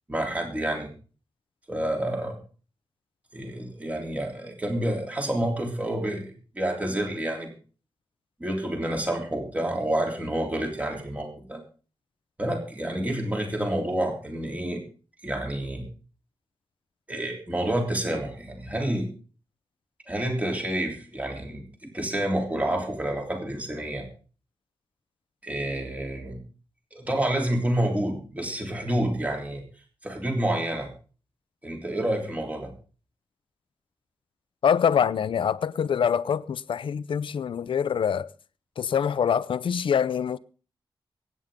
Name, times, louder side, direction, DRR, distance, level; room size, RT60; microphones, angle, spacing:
voice 1, 0.1-0.9 1.7-2.4 3.3-7.5 8.4-11.6 12.4-14.8 15.2-15.9 17.1-19.1 20.1-24.0 25.4-26.4 26.9-29.6 30.0-30.9 31.6-32.7, right 1 dB, 15° right, 3.4 m, -29 dB
voice 2, 34.6-38.3 38.8-40.4, left 7 dB, 75° left, 0.7 m, -25 dB
23.5 x 9.5 x 3.8 m
wide cardioid pair, 125°, 9 cm